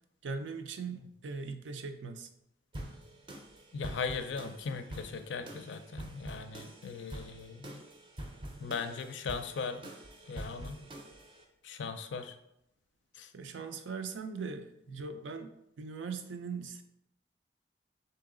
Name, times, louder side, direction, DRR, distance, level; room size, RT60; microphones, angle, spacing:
voice 1, 0.2-2.3 13.3-15.5 15.8-16.8, right 4 dB, 90° right, 7 dB, 0.4 m, -40 dB
sound 1, 2.7-11.4, right 1 dB, 25° right, 0.4 m, -46 dB
voice 2, 3.7-7.8 8.6-9.8 10.3-10.8 11.6-12.4 13.1-13.3, left 5 dB, 80° left, 9 dB, 0.4 m, -38 dB
3.8 x 2.8 x 3.7 m, 0.81 s
head